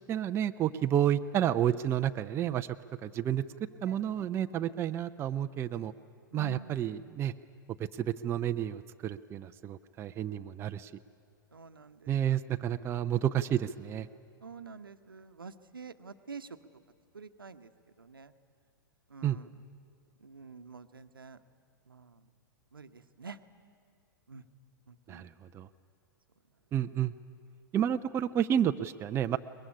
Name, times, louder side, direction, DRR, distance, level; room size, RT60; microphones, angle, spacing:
voice 1, 0.1-2.7 3.0-3.4 3.8-5.9 6.3-7.3 8.0-10.9 12.1-14.1 19.2-19.4 25.1-25.7 26.7-27.1 27.7-29.4, right 10 dB, 20° right, 9 dB, 0.5 m, -30 dB
voice 2, 3.9-4.3 6.3-6.8 11.5-12.1 14.4-16.5 17.1-17.7 18.0-18.3 19.1-19.5 20.2-21.4 21.9-22.2 22.7-23.4 24.3-24.4 24.9-25.2, right 4 dB, 80° right, 10 dB, 1.0 m, -47 dB
22.5 x 20.5 x 9.9 m, 2.3 s
figure-of-eight pair, 105°, 12 cm